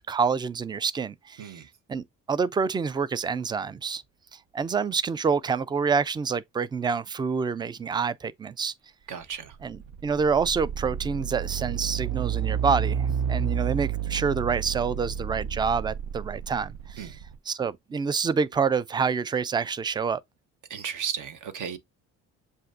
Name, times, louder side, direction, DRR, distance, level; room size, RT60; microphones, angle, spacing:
voice 1, 0.0-1.6 1.9-4.0 4.3-8.7 9.6-17.2 17.5-20.2, right 5 dB, 10° right, 0.3 m, -27 dB
voice 2, 9.1-9.6 17.0-17.1 20.7-21.8, right 8 dB, 50° right, 1.1 m, -34 dB
sound 1, 9.3-17.4, right 8 dB, 75° right, 0.8 m, -30 dB
7.5 x 2.6 x 2.5 m
hypercardioid pair, 55°, 40 cm